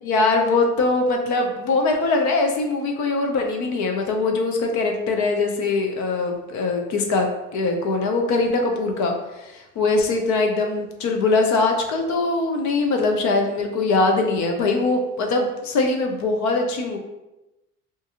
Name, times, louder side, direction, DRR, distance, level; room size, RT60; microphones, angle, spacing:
voice 1, 0.0-17.0, left 3 dB, 60° left, 3 dB, 0.5 m, -22 dB
2.5 x 2.4 x 2.7 m, 0.99 s
cardioid pair, 170°, 33 cm